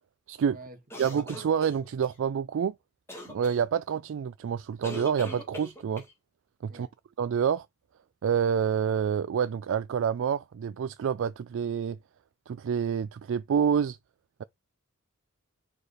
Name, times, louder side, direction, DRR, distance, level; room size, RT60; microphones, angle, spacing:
voice 1, 0.5-1.2 6.7-6.9, right 2 dB, 40° right, 1.5 m, -48 dB
sound 1, 0.9-2.1 3.1-3.6 4.8-6.1, left 1 dB, 10° left, 1.8 m, -40 dB
voice 2, 1.0-2.7 3.3-6.1 6.6-6.9 7.2-7.7 8.2-12.0 12.5-14.0, right 7 dB, 60° right, 0.3 m, -28 dB
4.9 x 4.7 x 4.1 m
head